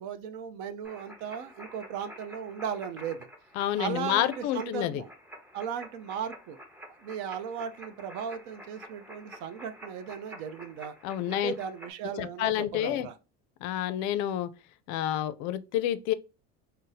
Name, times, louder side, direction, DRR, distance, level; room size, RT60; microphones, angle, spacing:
voice 1, 0.0-3.3 3.8-5.1 5.5-6.6 7.0-10.9 11.3-13.2, right 8 dB, 65° right, 0.6 m, -37 dB
sound 1, 0.8-11.9, equal, 5° right, 0.6 m, -49 dB
voice 2, 3.6-5.0 11.0-11.5 12.2-13.1 13.6-14.5 14.9-16.1, left 12 dB, 65° left, 0.4 m, -29 dB
2.6 x 2.0 x 3.8 m
supercardioid pair, 115°, 31 cm